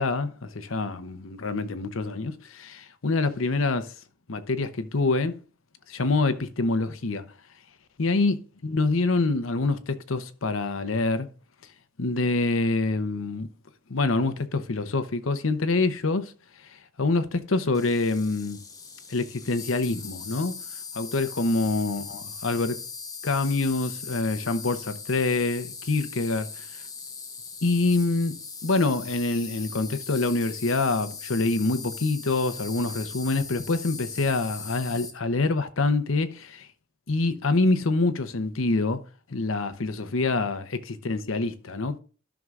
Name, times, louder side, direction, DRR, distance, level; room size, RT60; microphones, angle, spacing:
voice 1, 0.0-3.9 4.3-5.4 5.9-7.2 8.0-11.3 12.0-13.5 13.9-16.3 17.0-18.6 19.1-20.6 20.9-22.8 23.2-26.7 27.6-36.7 37.1-39.0 39.3-42.0, left 3 dB, 85° left, 0.9 m, -26 dB
Insect, 17.7-35.1, left 5 dB, 20° left, 1.1 m, -40 dB
13.0 x 6.1 x 2.5 m
head